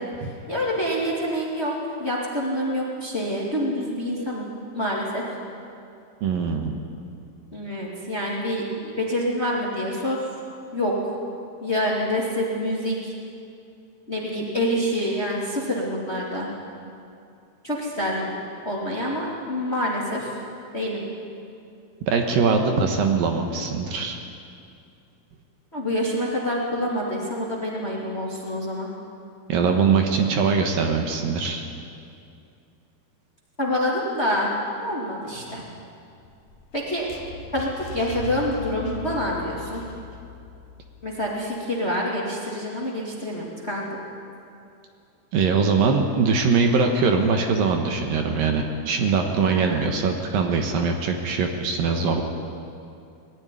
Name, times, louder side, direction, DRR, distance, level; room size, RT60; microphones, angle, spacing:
voice 1, 0.0-4.5 4.7-5.2 7.5-10.2 10.7-11.1 11.6-13.1 14.1-16.5 17.6-18.3 18.6-20.3 20.7-21.0 25.7-28.9 33.6-34.5 34.8-35.6 36.7-37.1 37.5-39.8 41.0-44.0 49.4-49.9, equal, 20° left, -3 dB, 2.0 m, -27 dB
voice 2, 6.2-6.8 22.1-24.2 29.5-31.6 45.3-52.2, right 5 dB, 70° right, 3 dB, 2.7 m, -22 dB
sound 1, 36.2-41.3, left 7 dB, 60° left, 2.2 m, -39 dB
20.0 x 14.5 x 9.8 m, 2.5 s
omnidirectional pair, 4.6 m